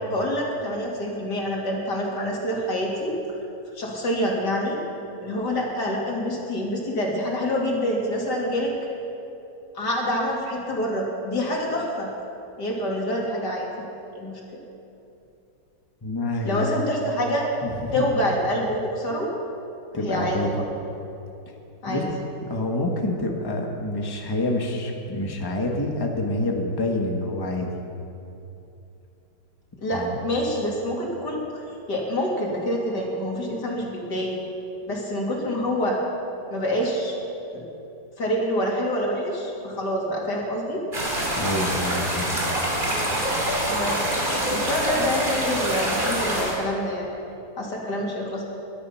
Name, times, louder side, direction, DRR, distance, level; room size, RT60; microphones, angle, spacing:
voice 1, 0.1-3.2 3.7-4.8 5.2-8.8 9.7-12.1 12.6-13.9 14.1-14.6 16.4-17.5 17.9-19.3 19.9-20.6 21.8-22.1 29.8-31.4 31.9-34.3 34.9-36.0 36.5-37.1 37.5-37.6 38.2-40.8 43.7-47.1 47.6-48.4, equal, 80° left, -2 dB, 3.2 m, -26 dB
voice 2, 16.0-16.7 17.6-18.0 19.9-20.6 21.9-27.7 29.9-30.2 41.4-42.4 45.0-45.1, left 1 dB, 15° left, 1 dB, 1.3 m, -27 dB
sound 1, 40.9-46.6, right 1 dB, 30° right, 3.0 m, -25 dB
22.5 x 10.5 x 5.7 m, 2.8 s
omnidirectional pair, 1.8 m